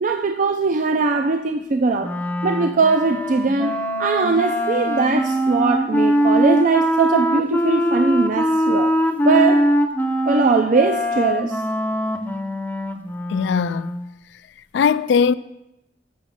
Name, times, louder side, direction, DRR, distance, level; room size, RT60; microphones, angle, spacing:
voice 1, 0.0-2.1 2.4-3.7 4.0-8.9 9.2-9.7 10.3-11.6, right 4 dB, 45° right, 0.4 m, -20 dB
Wind instrument woodwind instrument, 2.0-14.1, equal, 10° left, 0.5 m, -22 dB
voice 2, 13.3-13.9 14.7-15.3, left 6 dB, 70° left, 0.3 m, -19 dB
7.3 x 6.1 x 5.7 m
head